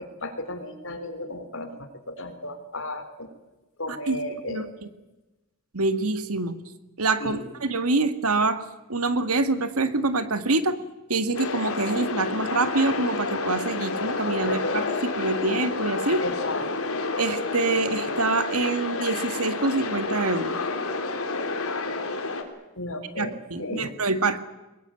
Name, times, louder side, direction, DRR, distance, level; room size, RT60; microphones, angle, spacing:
voice 1, 0.0-3.3 3.8-4.7 7.2-7.4 14.4-14.8 16.2-16.9 22.8-23.3 23.6-23.9, left 1 dB, 60° left, 8 dB, 3.9 m, -34 dB
voice 2, 3.9-4.2 4.5-4.6 5.7-6.5 7.0-10.8 11.1-16.2 17.2-20.5 23.2-24.4, right 3 dB, 85° right, 10 dB, 2.0 m, -25 dB
sound 1, 11.3-22.4, left 3 dB, 80° left, 3.7 m, -29 dB
23.0 x 21.0 x 9.2 m, 1.0 s
head